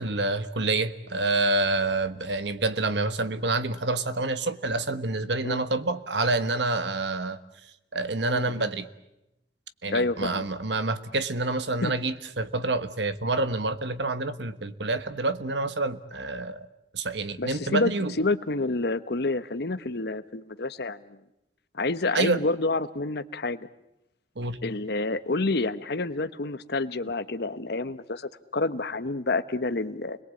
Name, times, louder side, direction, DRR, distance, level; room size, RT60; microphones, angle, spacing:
voice 1, 0.0-7.4 7.9-8.9 9.8-16.7 16.9-18.1 22.1-22.4 24.4-24.6, right 2 dB, 70° right, 12 dB, 1.4 m, -27 dB
voice 2, 8.3-8.7 9.9-10.4 11.8-11.9 17.4-17.9 18.2-21.2 21.7-23.7 24.6-30.2, left 3 dB, 65° left, 11 dB, 1.1 m, -28 dB
29.5 x 22.0 x 8.4 m, 0.88 s
head